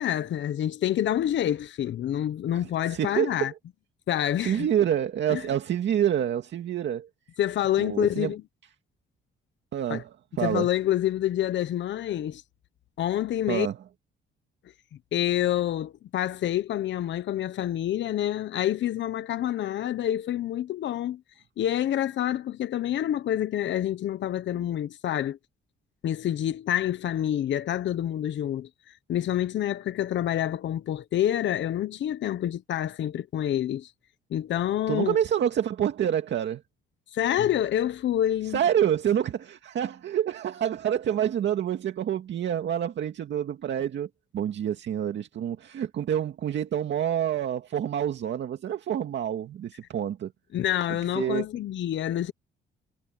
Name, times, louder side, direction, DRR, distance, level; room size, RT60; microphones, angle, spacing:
voice 1, 0.0-3.5 4.1-4.7 5.3-5.4 7.4-8.4 9.9-10.0 10.4-12.4 13.0-13.7 15.1-21.2 21.6-25.4 26.0-33.9 34.3-35.2 37.1-38.6 50.5-52.3, left 11 dB, 65° left, 1.1 m, -27 dB
voice 2, 2.5-3.5 4.4-7.1 7.8-8.3 9.7-10.7 13.5-13.8 34.9-36.6 38.5-50.3 51.1-51.5, right 10 dB, 65° right, 2.2 m, -27 dB
cardioid pair, 90°, 20 cm